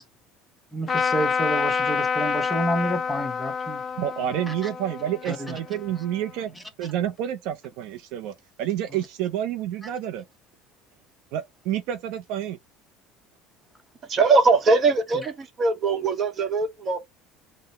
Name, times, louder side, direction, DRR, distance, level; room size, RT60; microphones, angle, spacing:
voice 1, 0.7-3.8 4.5-4.6 5.3-5.5, right 1 dB, 5° left, 0.9 m, -29 dB
Trumpet, 0.9-6.4, left 6 dB, 35° left, 0.6 m, -28 dB
voice 2, 4.0-10.2 11.3-12.6, right 11 dB, 70° right, 0.5 m, -29 dB
voice 3, 14.1-17.0, right 4 dB, 40° right, 0.9 m, -21 dB
3.8 x 2.1 x 4.0 m
supercardioid pair, 105°, 0 cm